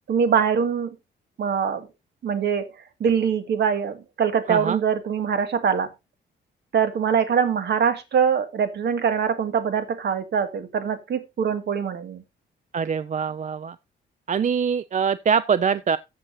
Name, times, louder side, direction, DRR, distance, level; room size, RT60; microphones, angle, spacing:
voice 1, 0.1-1.0 1.4-1.9 2.2-2.7 3.0-5.9 6.7-12.2, right 7 dB, 60° right, 2.0 m, -23 dB
voice 2, 4.5-4.8 12.7-13.8 14.3-16.0, right 6 dB, 40° right, 0.5 m, -23 dB
14.5 x 7.5 x 2.6 m
cardioid pair, 90°, 20 cm